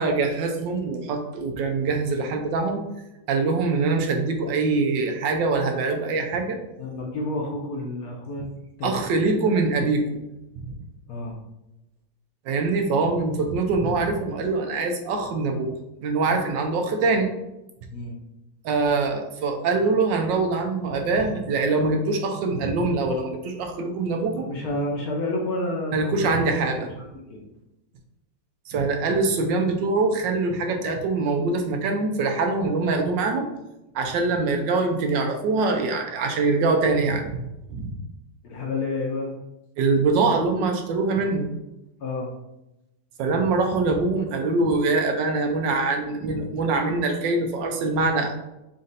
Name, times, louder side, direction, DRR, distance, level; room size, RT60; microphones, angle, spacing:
voice 1, 0.0-2.8 3.3-6.6 8.8-10.2 10.6-10.7 12.5-15.7 16.0-17.3 18.6-24.5 25.9-26.9 28.7-33.5 33.9-37.4 37.7-37.9 39.8-41.5 43.2-48.3, right 3 dB, 75° right, 4 dB, 1.3 m, -23 dB
voice 2, 6.7-8.5 8.8-9.0 11.1-11.4 17.9-18.2 24.3-26.6 27.3-27.5 29.0-29.2 38.4-39.3 42.0-42.3, left 2 dB, 60° left, 0 dB, 1.1 m, -30 dB
4.2 x 2.6 x 3.9 m, 0.91 s
omnidirectional pair, 2.0 m